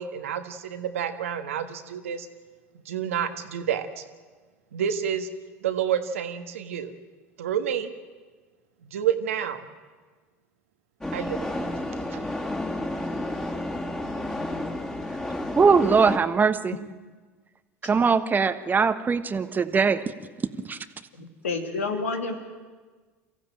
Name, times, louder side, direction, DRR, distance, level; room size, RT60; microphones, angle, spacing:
voice 1, 0.0-2.3 2.8-4.0 4.7-5.3 5.6-7.0 7.4-7.9 8.8-9.7 11.1-11.6 12.1-12.2, right 9 dB, 85° right, 8 dB, 1.5 m, -29 dB
sound 1, 11.0-16.2, left 1 dB, 10° left, 3.3 m, -31 dB
voice 2, 15.5-16.7 17.8-20.0 20.4-20.8, right 5 dB, 25° right, 11 dB, 1.2 m, -21 dB
voice 3, 21.1-22.3, left 3 dB, 90° left, 5 dB, 2.5 m, -29 dB
24.0 x 15.0 x 9.1 m, 1.4 s
hypercardioid pair, 80°, 7 cm